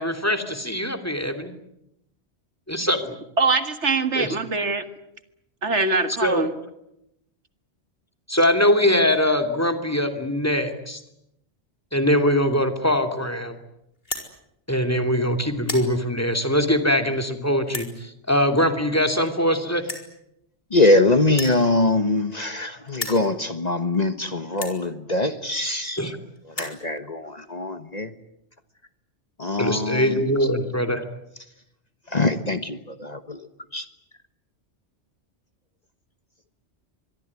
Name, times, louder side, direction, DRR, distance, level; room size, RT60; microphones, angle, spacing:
voice 1, 0.0-1.5 2.7-3.2 4.1-4.4 6.2-6.5 8.3-11.0 11.9-13.6 14.7-19.8 26.0-26.2 29.6-31.0, equal, 15° left, 9 dB, 2.8 m, -22 dB
voice 2, 3.4-4.8 5.6-6.5, right 3 dB, 75° right, 10 dB, 2.1 m, -23 dB
sound 1, 14.0-14.3 15.0-15.2 15.5-15.9 16.6-16.7 17.6-17.9 19.0-19.1 19.3-19.4 19.8-20.1 21.3-22.6 22.9-23.2 23.9-24.0 24.5-24.8 25.7-25.8 26.0-26.1 26.4-26.8, left 2 dB, 55° left, 4.8 m, -33 dB
voice 3, 20.7-26.1 26.6-28.1 29.4-30.2 32.1-33.4 33.7-33.8, left 2 dB, 35° left, 10 dB, 1.4 m, -23 dB
25.5 x 22.0 x 9.8 m, 0.82 s
omnidirectional pair, 1.2 m